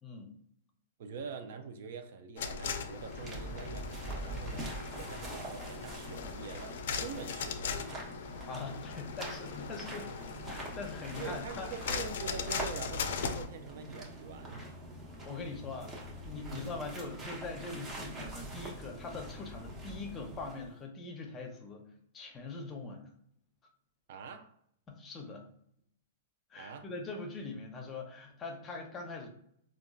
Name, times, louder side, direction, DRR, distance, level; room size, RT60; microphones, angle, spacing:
voice 1, 0.0-0.3 8.5-10.1 10.5-11.7 15.2-23.1 24.9-25.5 26.5-29.3, left 3 dB, 25° left, 3 dB, 0.7 m, -42 dB
voice 2, 1.0-8.0 11.2-14.6 16.5-16.8 24.1-24.5 26.6-26.9, right 5 dB, 65° right, 7 dB, 0.4 m, -45 dB
sound 1, 2.4-13.5, left 6 dB, 70° left, 0.4 m, -39 dB
sound 2, 2.5-20.8, right 1 dB, 25° right, 0.9 m, -44 dB
3.7 x 2.3 x 2.3 m, 0.68 s
hypercardioid pair, 130°, 0 cm